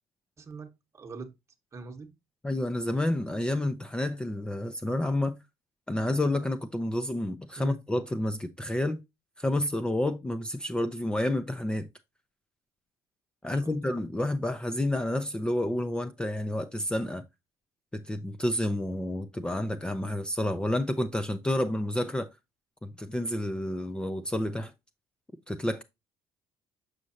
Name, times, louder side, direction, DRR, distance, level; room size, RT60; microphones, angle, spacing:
voice 1, 0.4-1.3 1.7-2.1 7.6-7.8 13.4-13.9, right 4 dB, 30° right, 1.1 m, -42 dB
voice 2, 2.4-5.4 5.9-9.0 9.4-11.9 13.4-17.2 17.9-22.3 22.8-24.7 25.5-25.8, left 1 dB, 10° left, 0.5 m, -29 dB
6.4 x 6.1 x 2.7 m
cardioid pair, 120°, 10 cm